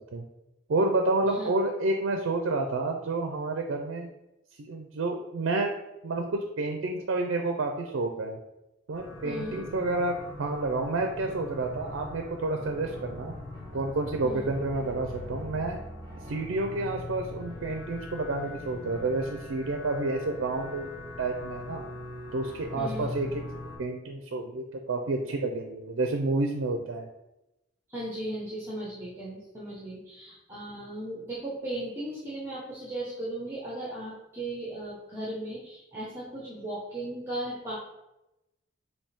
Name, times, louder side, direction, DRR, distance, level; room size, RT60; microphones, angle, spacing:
voice 1, 0.7-4.1 4.6-5.7 6.0-6.3 6.6-8.4 8.9-13.3 13.7-15.8 16.3-20.9 21.2-21.8 22.3-23.4 23.8-27.1, right 2 dB, 70° right, 3 dB, 0.4 m, -29 dB
sound 1, 8.9-23.8, left 2 dB, 20° left, 1.1 m, -41 dB
voice 2, 9.2-9.6 14.2-14.5 22.7-23.1 27.9-37.7, right 1 dB, 10° right, -7 dB, 0.7 m, -37 dB
3.5 x 2.7 x 4.2 m, 0.93 s
head